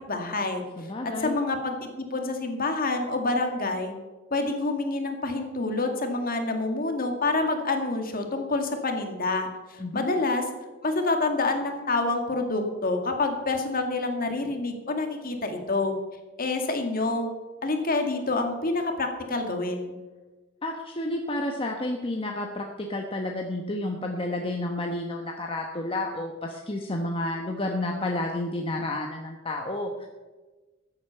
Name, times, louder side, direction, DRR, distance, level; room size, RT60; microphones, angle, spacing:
voice 1, 0.1-0.6 1.0-3.9 4.3-10.4 10.8-15.9 16.4-17.3 17.6-19.9, left 3 dB, 45° left, 4 dB, 2.1 m, -27 dB
voice 2, 0.8-1.3 9.8-10.1 20.6-30.1, left 1 dB, 25° left, 1 dB, 1.1 m, -30 dB
14.0 x 8.2 x 6.9 m, 1.2 s
head